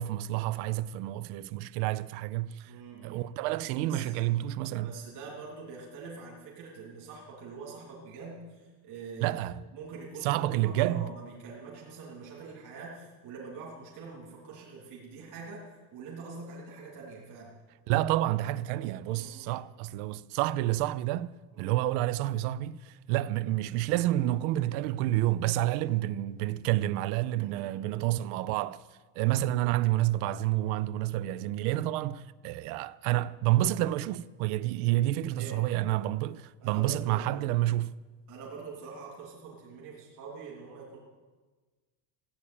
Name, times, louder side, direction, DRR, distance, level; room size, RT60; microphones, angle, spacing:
voice 1, 0.0-2.7 3.0-5.0 9.2-9.7 10.2-11.1 17.9-28.8 29.2-38.0, right 15 dB, 75° right, 0.7 m, -29 dB
voice 2, 2.7-3.3 3.8-4.3 4.7-9.4 9.7-15.6 15.9-17.5 18.7-18.8 19.1-19.6 21.5-21.9 27.4-28.0 35.3-36.1 36.6-37.5 38.3-41.0, right 4 dB, 45° right, 3.4 m, -45 dB
15.5 x 8.7 x 8.7 m
cardioid pair, 175°, 43 cm